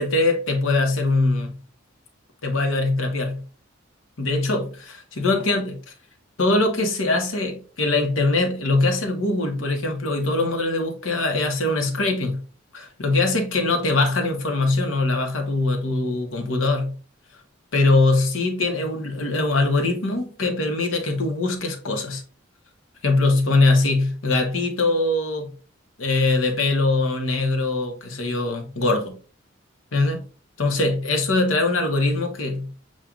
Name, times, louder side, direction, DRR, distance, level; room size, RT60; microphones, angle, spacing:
voice 1, 0.0-1.5 2.4-3.4 4.2-5.8 6.4-12.4 12.7-16.9 17.7-22.2 23.0-25.5 26.0-29.2 29.9-30.2 30.6-32.7, left 2 dB, 75° left, 1.0 m, -22 dB
7.3 x 2.5 x 2.4 m
head